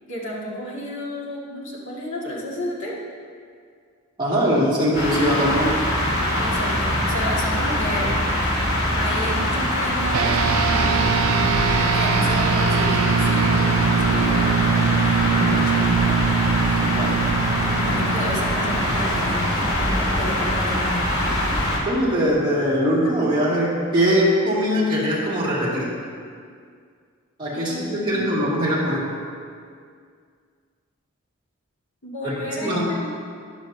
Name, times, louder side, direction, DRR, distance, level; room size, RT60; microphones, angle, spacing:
voice 1, 0.1-2.9 6.4-8.2 8.9-10.9 11.9-16.2 16.7-16.8 17.8-21.4 27.5-28.4 32.0-33.1, equal, 65° left, -5 dB, 2.2 m, -31 dB
voice 2, 4.2-5.8 16.9-17.2 21.8-25.9 27.4-29.1 32.2-32.9, equal, 25° right, -7 dB, 2.6 m, -21 dB
sound 1, 4.9-21.8, left 1 dB, 90° left, 2.7 m, -23 dB
sound 2, 10.1-19.8, right 6 dB, 85° right, 0.5 m, -22 dB
13.0 x 11.0 x 2.8 m, 2.1 s
head